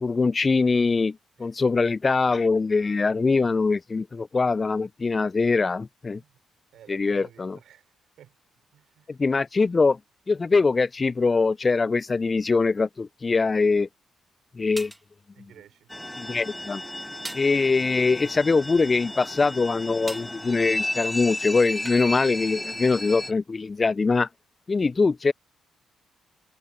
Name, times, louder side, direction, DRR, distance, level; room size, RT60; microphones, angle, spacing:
voice 1, 0.0-6.2 6.9-7.6 9.1-10.0 10.3-13.9 14.6-14.9 16.2-16.8 17.3-24.3 24.7-25.3, left 4 dB, 35° left, 0.4 m, -23 dB
voice 2, 6.7-8.4 8.7-9.2 15.3-15.9, right 11 dB, 70° right, 3.6 m, -52 dB
sound 1, 14.8-15.1 17.2-17.5 20.1-20.4 21.8-22.1, right 1 dB, 10° right, 1.5 m, -38 dB
sound 2, 15.9-23.3, left 1 dB, 10° left, 0.8 m, -34 dB
hypercardioid pair, 45°, 0 cm